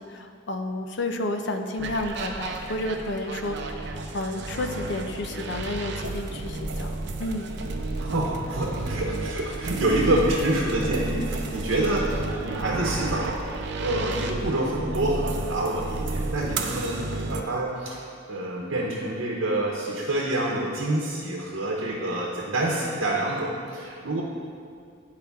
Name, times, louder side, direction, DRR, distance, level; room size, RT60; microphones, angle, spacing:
voice 1, 0.0-3.6 4.1-7.5, left 2 dB, 60° left, 6 dB, 0.5 m, -31 dB
sound 1, 1.7-17.4, right 2 dB, 60° right, 0.5 m, -32 dB
voice 2, 8.0-13.5 13.8-18.0 18.3-24.2, right 1 dB, 80° right, -3 dB, 0.9 m, -27 dB
9.7 x 4.8 x 3.5 m, 2.3 s
head